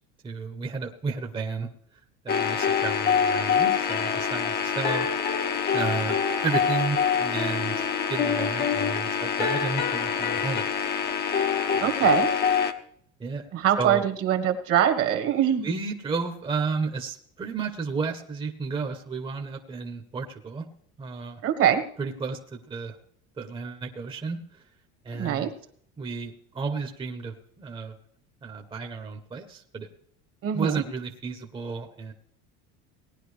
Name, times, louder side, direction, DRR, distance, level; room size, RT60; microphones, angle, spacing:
voice 1, 0.2-1.7 2.2-5.1 5.7-10.6 11.7-11.8 13.2-13.4 13.8-14.0 15.6-20.6 21.0-21.4 22.0-22.9 23.4-24.4 25.0-25.5 26.0-27.9 28.4-29.9 30.5-32.1, right 4 dB, 15° right, 3 dB, 1.0 m, -32 dB
sound 1, 2.3-12.7, left 7 dB, 30° left, 0.9 m, -25 dB
voice 2, 11.8-12.3 13.5-15.7 21.4-21.8 25.1-25.5 30.4-30.8, right 10 dB, 45° right, 7 dB, 1.4 m, -23 dB
18.5 x 10.0 x 3.3 m, 0.63 s
cardioid pair, 140°, 31 cm